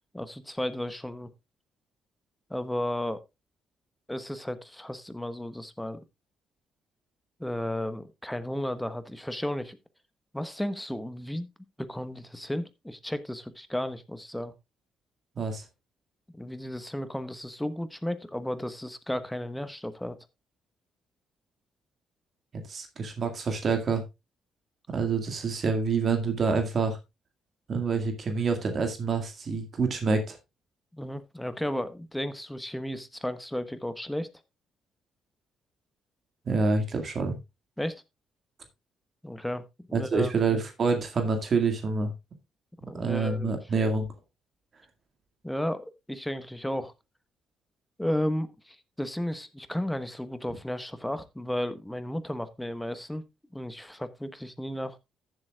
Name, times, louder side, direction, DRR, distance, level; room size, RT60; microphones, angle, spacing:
voice 1, 0.1-1.3 2.5-3.2 4.1-6.0 7.4-9.8 10.3-11.5 11.8-14.5 16.3-20.2 30.9-34.3 37.8-38.0 39.2-40.3 42.8-43.6 45.4-46.9 48.0-53.2 53.5-55.0, left 1 dB, 5° left, 11 dB, 1.2 m, -33 dB
voice 2, 22.7-24.0 24.9-27.0 27.7-30.4 36.5-37.4 39.9-42.1 42.9-44.1, right 4 dB, 50° right, 6 dB, 2.0 m, -27 dB
14.5 x 7.8 x 2.4 m, 0.22 s
cardioid pair, 90°, 0 cm